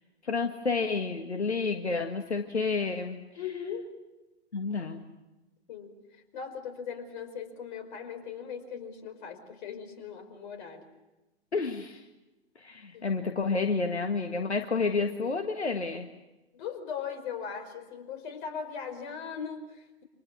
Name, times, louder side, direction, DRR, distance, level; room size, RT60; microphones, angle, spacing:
voice 1, 0.2-3.2 4.5-5.0 11.5-12.0 12.5-16.1, left 4 dB, 80° left, 5 dB, 1.7 m, -30 dB
voice 2, 3.4-3.8 5.7-10.8 12.9-13.1 16.5-20.0, left 7 dB, 45° left, 5 dB, 5.3 m, -39 dB
29.5 x 26.0 x 6.4 m, 1.0 s
figure-of-eight pair, 110°, 33 cm